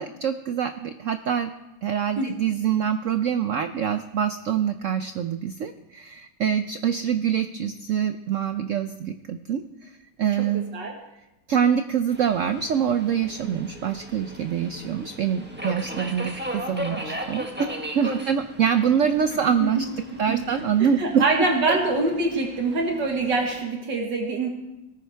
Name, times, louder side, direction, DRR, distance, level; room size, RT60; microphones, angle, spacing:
voice 1, 0.0-1.5 1.8-10.7 11.5-19.9 20.2-21.8, right 8 dB, 90° right, 9 dB, 0.6 m, -25 dB
voice 2, 10.4-10.9 18.0-18.3 19.5-19.7 20.1-20.4 20.8-24.5, right 3 dB, 70° right, 1 dB, 2.1 m, -25 dB
Subway metro underground, 12.1-23.6, equal, 5° right, 1.2 m, -37 dB
18.5 x 14.0 x 3.4 m, 0.94 s
omnidirectional pair, 2.0 m